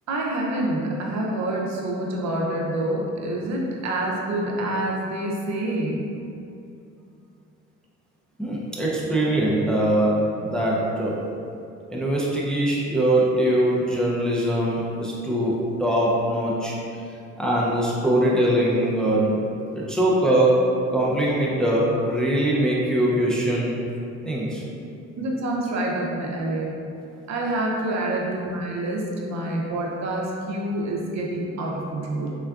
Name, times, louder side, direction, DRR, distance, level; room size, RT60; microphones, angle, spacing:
voice 1, 0.1-6.1 25.2-26.8 27.3-32.3, right 1 dB, 65° right, -2 dB, 0.6 m, -27 dB
voice 2, 8.4-11.1 11.9-16.7 17.4-19.3 19.7-20.5 20.9-23.8 24.2-24.6, right 1 dB, ahead, -6 dB, 0.4 m, -22 dB
3.7 x 2.2 x 2.3 m, 2.6 s
cardioid pair, 90°, 30 cm